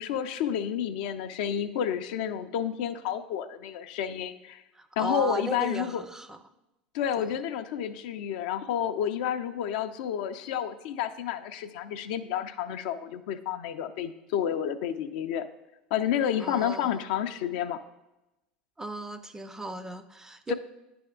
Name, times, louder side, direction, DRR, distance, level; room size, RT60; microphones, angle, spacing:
voice 1, 0.0-4.6 5.0-6.0 6.9-15.5 15.9-17.8 20.5-20.6, left 9 dB, 65° left, 9 dB, 0.4 m, -30 dB
voice 2, 4.7-6.4 7.2-7.4 16.4-17.0 18.8-20.5, right 2 dB, 10° right, 11 dB, 0.4 m, -36 dB
9.8 x 3.4 x 3.6 m, 0.96 s
hypercardioid pair, 80°, 5 cm